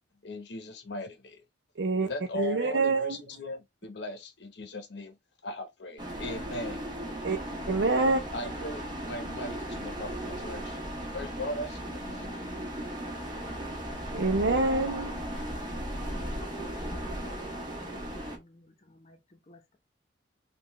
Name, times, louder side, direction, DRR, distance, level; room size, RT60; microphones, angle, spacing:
voice 1, 0.2-1.4 2.0-5.2 5.4-6.8 8.3-12.3, left 1 dB, 70° left, 0.8 m, -39 dB
voice 2, 1.8-2.1 2.4-3.2 7.2-7.4 7.7-8.2 14.1-15.2, right 3 dB, 65° right, 0.5 m, -26 dB
sound 1, 6.0-18.4, equal, 25° right, 1.1 m, -36 dB
voice 3, 12.0-12.7 16.0-19.8, left 1 dB, 35° left, 0.8 m, -51 dB
3.9 x 2.4 x 3.0 m
head